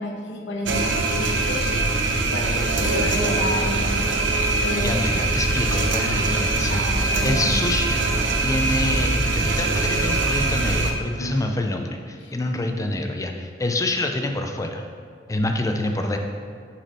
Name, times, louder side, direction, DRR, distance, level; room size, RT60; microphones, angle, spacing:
voice 1, 0.0-5.0 6.0-6.4 6.7-7.5 11.2-11.4 12.2-12.4, left 1 dB, 85° left, 0 dB, 1.1 m, -32 dB
sound 1, 0.6-10.9, right 2 dB, 85° right, 0.7 m, -22 dB
voice 2, 4.8-6.8 7.2-8.0 8.4-14.8 15.3-16.2, left 2 dB, 20° left, 4 dB, 0.5 m, -26 dB
6.0 x 4.2 x 5.5 m, 2.1 s
head